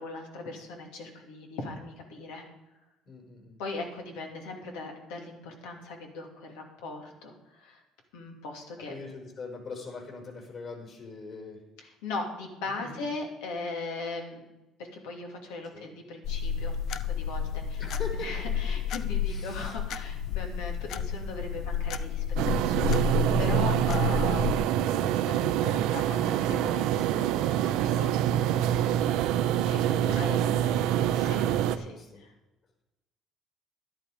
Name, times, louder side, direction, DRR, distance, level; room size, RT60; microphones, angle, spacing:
voice 1, 0.0-2.4 3.6-7.8 8.1-8.9 12.0-14.4 14.9-17.8 18.1-28.1 29.7-30.4 31.0-32.3, left 3 dB, 85° left, 2 dB, 2.6 m, -39 dB
voice 2, 3.1-3.6 8.9-11.6 12.7-13.0 15.7-15.9 17.8-18.4 19.3-19.8 28.9-29.5 30.0-32.2, left 3 dB, 50° left, 1 dB, 5.2 m, -43 dB
sound 1, 16.2-24.6, left 7 dB, 65° left, 0.7 m, -31 dB
sound 2, 22.4-31.8, right 11 dB, 80° right, 0.7 m, -26 dB
11.5 x 11.5 x 5.0 m, 1.0 s
supercardioid pair, 85°, 0 cm